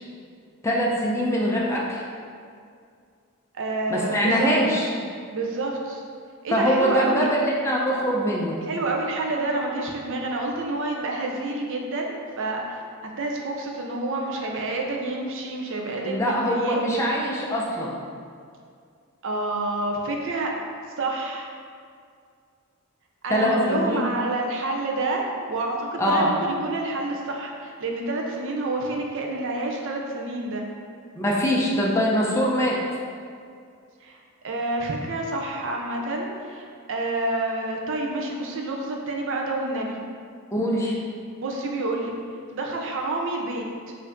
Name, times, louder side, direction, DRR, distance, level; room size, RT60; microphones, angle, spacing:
voice 1, 0.6-2.0 3.9-4.9 6.5-8.6 16.0-18.0 23.3-24.1 26.0-26.3 31.2-32.8 40.5-41.0, equal, 15° left, -4 dB, 0.5 m, -23 dB
voice 2, 3.5-4.5 5.3-6.0 6.4-7.3 8.7-17.1 19.2-20.5 21.0-21.5 23.2-25.2 25.5-30.6 34.0-34.2 34.4-40.0 41.4-42.1 42.5-43.9, right 2 dB, 60° right, 0 dB, 0.6 m, -28 dB
4.4 x 2.6 x 3.6 m, 2.2 s
head